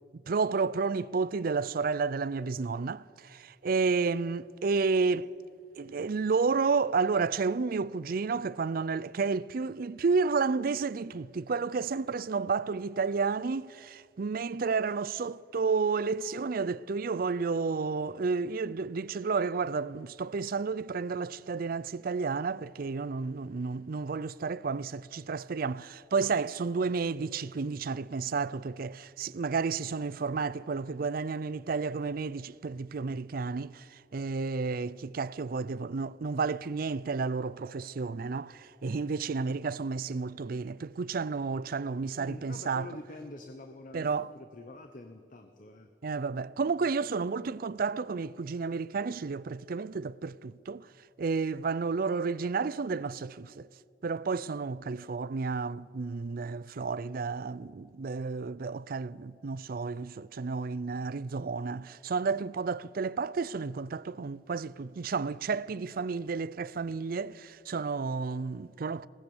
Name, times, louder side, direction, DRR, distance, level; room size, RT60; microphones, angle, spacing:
voice 1, 0.3-5.3 5.8-43.0 43.9-44.3 46.0-50.9 51.2-53.7 54.0-69.1, right 4 dB, 55° right, 0.5 m, -31 dB
voice 2, 42.1-44.1 44.3-45.9, left 2 dB, 50° left, 1.1 m, -46 dB
21.0 x 19.0 x 7.1 m
head